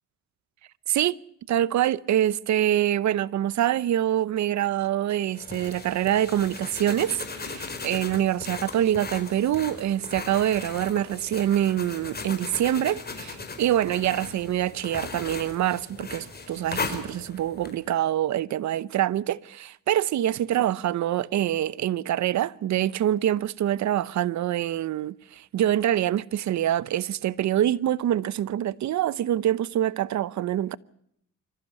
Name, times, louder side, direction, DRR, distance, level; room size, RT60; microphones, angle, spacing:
voice 1, 1.5-30.8, right 11 dB, 65° right, 0.9 m, -25 dB
sound 1, 5.3-17.8, left 4 dB, 30° left, 4.9 m, -37 dB
25.5 x 15.0 x 8.2 m
cardioid pair, 90°, 30 cm